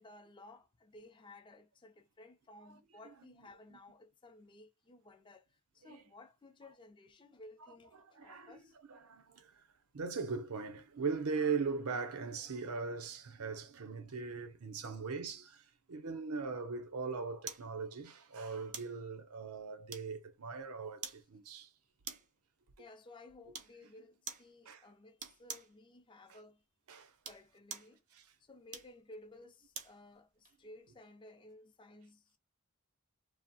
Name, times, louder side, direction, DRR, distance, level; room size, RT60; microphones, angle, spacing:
voice 1, 0.0-8.8 14.9-15.0 22.8-26.6 27.2-32.4, left 2 dB, 20° left, 0.4 m, -57 dB
voice 2, 7.7-8.6 8.9-9.6 9.9-21.7 24.7-24.9 26.3-26.4 26.9-27.1 28.1-28.3, right 5 dB, 75° right, 0.6 m, -40 dB
sound 1, 17.5-17.7 18.7-19.0 19.9-20.3 21.0-21.3 22.0-22.4 23.5-23.8 24.3-24.5 25.2-25.7 27.1-27.9 28.7-30.0 30.4-30.6, right 6 dB, 35° right, 0.5 m, -46 dB
2.8 x 2.0 x 2.7 m
head